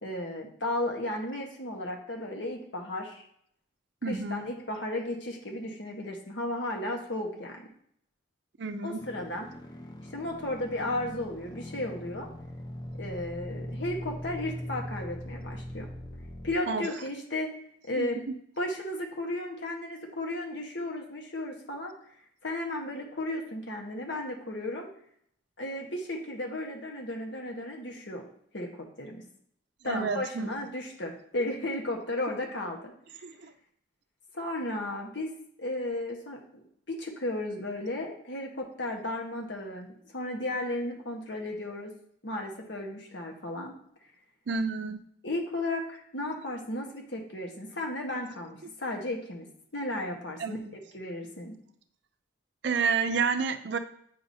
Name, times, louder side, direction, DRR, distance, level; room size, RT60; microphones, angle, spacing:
voice 1, 0.0-3.2 4.0-7.7 8.8-9.5 10.1-12.3 13.0-15.9 16.4-17.5 17.8-18.2 18.6-21.9 22.4-24.9 25.6-28.2 28.5-29.2 29.8-32.9 34.3-35.3 35.6-36.4 36.9-41.9 42.2-43.7 45.2-50.6 50.9-51.6, left 1 dB, 65° left, 1 dB, 1.2 m, -34 dB
voice 2, 4.0-4.5 8.6-9.0 16.7-16.8 18.0-18.1 29.8-30.5 33.2-33.5 44.5-45.0 50.4-50.7 52.6-53.8, right 5 dB, 60° right, 9 dB, 0.4 m, -29 dB
sound 1, 9.0-16.6, equal, 20° left, 0.5 m, -41 dB
8.7 x 4.8 x 2.7 m, 0.66 s
head